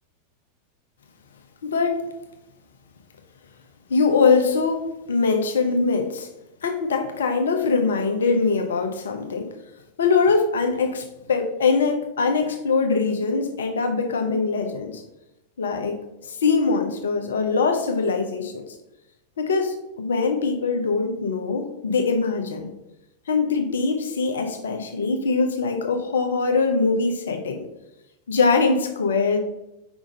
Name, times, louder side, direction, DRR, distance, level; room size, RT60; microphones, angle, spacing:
voice 1, 1.6-2.0 3.9-6.3 6.6-9.5 10.0-15.0 15.6-18.6 19.4-22.7 23.3-27.6 28.3-29.4, left 4 dB, 65° left, 5 dB, 0.8 m, -22 dB
5.1 x 3.7 x 5.1 m, 0.92 s
figure-of-eight pair, 90°, 0 cm